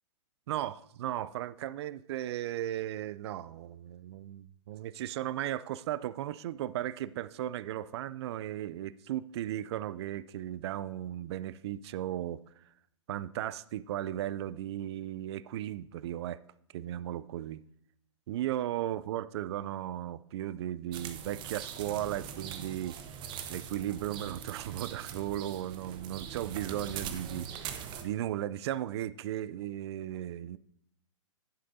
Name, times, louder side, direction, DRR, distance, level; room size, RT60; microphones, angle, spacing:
voice 1, 0.5-12.6 13.1-16.4 16.7-17.6 18.3-23.0 23.5-30.6, right 12 dB, 55° right, 0.4 m, -36 dB
sound 1, 20.9-28.0, right 8 dB, 30° right, 0.9 m, -42 dB
11.5 x 9.7 x 2.7 m
hypercardioid pair, 125°, 16 cm